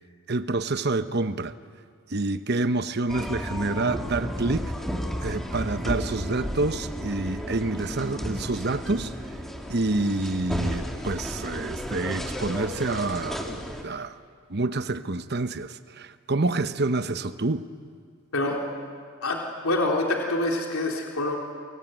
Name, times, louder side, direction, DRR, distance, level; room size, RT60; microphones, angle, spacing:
voice 1, 0.3-1.5 2.1-4.7 5.2-9.2 9.7-14.2 14.5-17.7, right 2 dB, 45° right, 1.0 m, -28 dB
sound 1, 3.1-13.8, equal, ahead, 2.2 m, -33 dB
voice 2, 19.2-21.4, left 2 dB, 75° left, 3.6 m, -26 dB
28.5 x 22.5 x 9.2 m
head